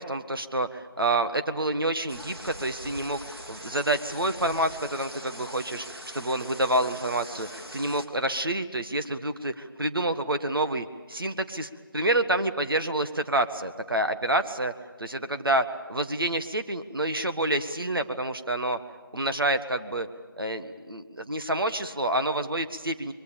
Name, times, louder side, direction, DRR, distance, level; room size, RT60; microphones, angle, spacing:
voice 1, 0.0-14.7 15.0-18.8 19.1-20.1 20.4-23.1, right 1 dB, 70° right, 8 dB, 1.6 m, -28 dB
sound 1, 2.1-8.1, equal, 90° right, 3.2 m, -42 dB
27.5 x 23.0 x 7.0 m, 1.4 s
figure-of-eight pair, 170°, 12 cm